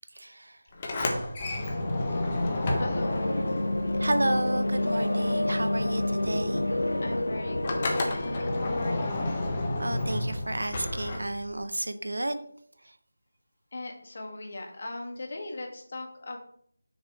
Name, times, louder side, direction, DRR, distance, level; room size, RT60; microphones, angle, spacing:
Sliding door, 0.7-5.0 5.3-11.6, left 2 dB, 25° left, 1.1 m, -32 dB
sound 1, 1.6-9.0, left 1 dB, 80° left, 1.1 m, -29 dB
voice 1, 2.8-3.6 7.0-9.2 13.7-16.4, left 2 dB, 45° left, 2 dB, 1.6 m, -39 dB
voice 2, 4.0-6.6 9.8-12.4, right 1 dB, 80° right, 10 dB, 0.8 m, -31 dB
6.4 x 5.1 x 4.8 m, 0.62 s
figure-of-eight pair, 170°, 0 cm